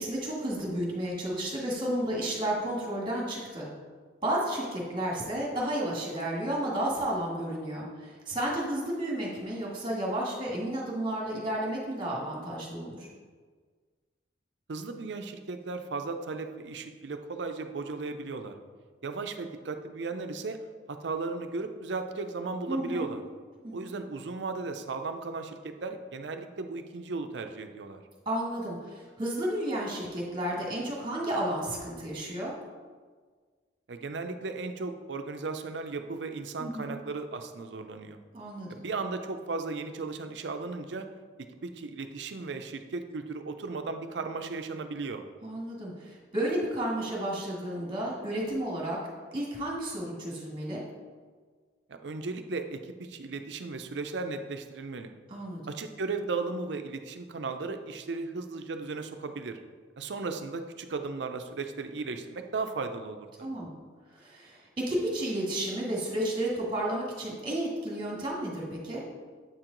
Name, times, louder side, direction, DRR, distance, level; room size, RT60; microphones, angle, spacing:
voice 1, 0.0-3.7 4.2-13.1 22.7-23.1 23.6-23.8 28.2-32.5 36.6-37.0 38.3-38.8 45.4-49.0 49.3-50.8 55.3-55.6 63.4-63.7 64.1-69.0, right 1 dB, 25° right, -3 dB, 1.6 m, -32 dB
voice 2, 14.7-18.5 19.0-20.6 20.9-23.2 23.7-28.0 33.9-38.2 38.7-41.1 41.6-45.2 51.9-55.1 55.7-59.6 60.0-63.5, right 3 dB, 70° right, 7 dB, 0.5 m, -36 dB
7.8 x 4.5 x 3.8 m, 1.5 s
head